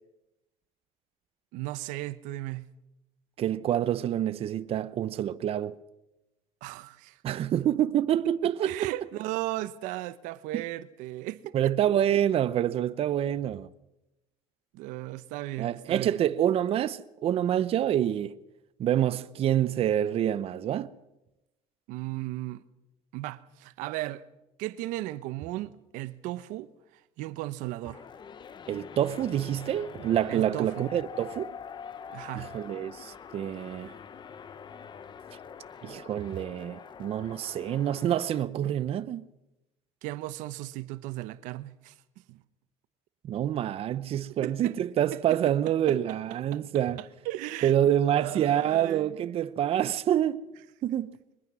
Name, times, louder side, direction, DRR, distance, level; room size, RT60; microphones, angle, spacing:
voice 1, 1.5-2.7 6.6-7.4 8.6-11.7 14.7-16.2 21.9-22.6 23.1-24.2 24.6-26.7 27.2-28.0 30.3-30.9 32.1-32.5 40.0-41.9 42.3-42.4 44.4-44.8 45.1-45.2 45.9-46.2 46.5-46.6 47.0-47.7 48.0-49.2, right 17 dB, 85° right, 0.9 m, -36 dB
voice 2, 3.4-5.8 7.2-8.9 10.5-10.6 11.5-13.7 15.6-18.3 18.8-20.9 28.7-31.5 32.3-33.9 35.8-39.2 43.2-47.0 47.6-50.4 50.8-51.1, right 11 dB, 50° right, 0.7 m, -27 dB
sound 1, 27.8-38.4, left 7 dB, 35° left, 1.0 m, -45 dB
23.0 x 20.5 x 6.2 m
cardioid pair, 120°, 13 cm